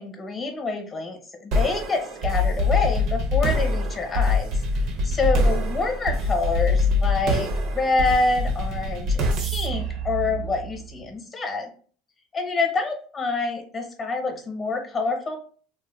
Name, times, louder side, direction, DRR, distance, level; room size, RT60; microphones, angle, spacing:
voice 1, 0.0-11.7 12.3-15.3, left 3 dB, 25° left, 3 dB, 0.8 m, -27 dB
sound 1, 1.5-10.9, left 2 dB, 55° right, 0.6 m, -24 dB
3.5 x 2.2 x 2.2 m, 0.43 s
supercardioid pair, 125°, 0 cm